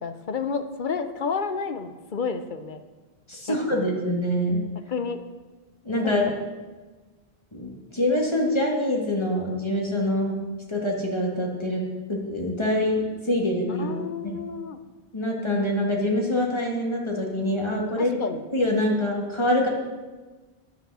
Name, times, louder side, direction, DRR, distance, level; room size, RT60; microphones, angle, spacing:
voice 1, 0.0-2.8 3.5-3.8 4.9-5.2 6.0-6.4 13.7-14.8 18.0-18.4, left 5 dB, 55° left, 9 dB, 0.8 m, -31 dB
voice 2, 3.3-4.6 5.8-6.3 7.5-10.4 10.7-11.8 12.1-13.9 14.2-14.4 15.1-18.2 18.5-19.7, left 1 dB, 25° left, -1 dB, 1.8 m, -25 dB
9.4 x 8.2 x 6.2 m, 1.3 s
omnidirectional pair, 1.0 m